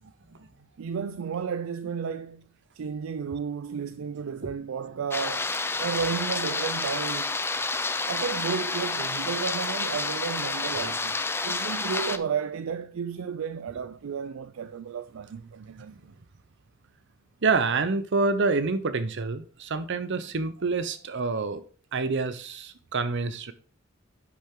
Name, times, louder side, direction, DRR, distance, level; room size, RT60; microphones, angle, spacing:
voice 1, 0.8-2.5 2.7-5.5 5.8-7.4 8.1-11.2 11.4-16.1, right 6 dB, 75° right, 0.4 m, -33 dB
sound 1, 5.1-12.2, left 3 dB, 10° left, 0.4 m, -29 dB
voice 2, 17.4-21.6 21.9-23.5, right 4 dB, 60° right, 0.8 m, -27 dB
10.0 x 6.1 x 3.8 m
head